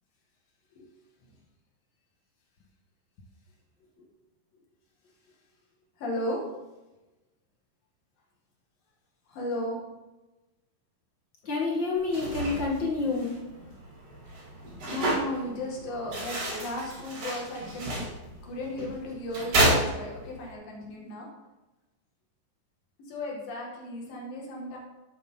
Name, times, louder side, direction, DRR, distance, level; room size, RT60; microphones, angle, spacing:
voice 1, 6.0-6.4 9.3-9.8 14.8-18.1 18.4-21.3 23.1-24.8, left 1 dB, 90° left, -2 dB, 3.8 m, -35 dB
voice 2, 11.4-13.4, left 3 dB, 45° left, -2 dB, 1.8 m, -28 dB
sound 1, 12.0-20.5, right 1 dB, 65° right, 4.8 m, -31 dB
12.5 x 9.1 x 3.8 m, 1.1 s
omnidirectional pair, 3.9 m